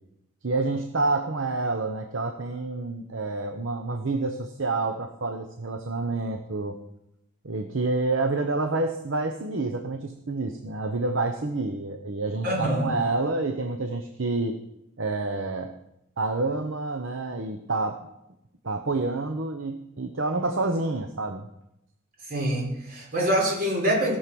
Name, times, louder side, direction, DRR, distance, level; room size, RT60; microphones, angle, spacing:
voice 1, 0.4-6.8 7.4-14.6 15.0-15.7 16.2-18.0 18.6-21.5, right 3 dB, 65° right, 6 dB, 0.8 m, -28 dB
voice 2, 12.4-12.9 22.3-24.2, equal, 45° right, -2 dB, 4.2 m, -25 dB
16.5 x 6.5 x 6.1 m, 0.83 s
head